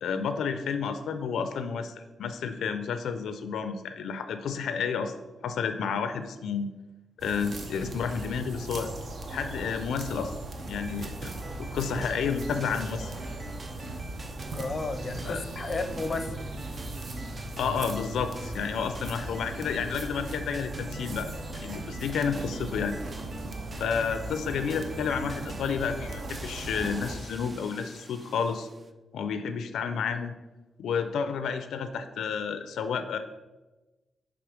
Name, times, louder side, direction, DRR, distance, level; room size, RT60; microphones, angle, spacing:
voice 1, 0.0-5.1 5.4-6.7 7.2-8.9 9.3-10.3 10.7-11.3 11.6-13.1 15.2-15.4 17.6-23.0 23.8-28.7 29.1-30.4 30.8-33.2, left 6 dB, 90° left, 9 dB, 0.4 m, -31 dB
sound 1, 7.2-27.1, right 2 dB, 55° right, 0.8 m, -38 dB
sound 2, 10.7-28.9, right 3 dB, 30° right, 0.4 m, -44 dB
voice 2, 14.5-16.4 23.8-24.1, left 3 dB, 35° left, 8 dB, 0.5 m, -33 dB
5.9 x 3.4 x 4.9 m, 1.1 s
cardioid pair, 100°, 0 cm